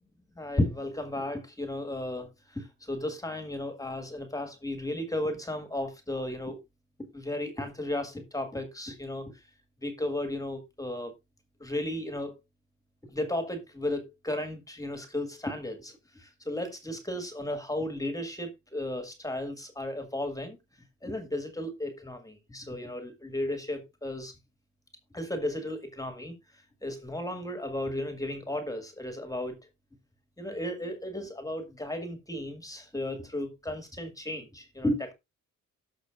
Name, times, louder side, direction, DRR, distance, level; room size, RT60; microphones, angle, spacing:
voice 1, 0.4-6.6 7.1-9.3 9.8-11.1 11.6-12.4 13.1-20.6 21.0-24.3 25.1-26.3 26.8-29.6 30.4-35.1, left 1 dB, 10° left, 1.9 m, -34 dB
17.5 x 5.9 x 2.5 m
cardioid pair, 90°, 30 cm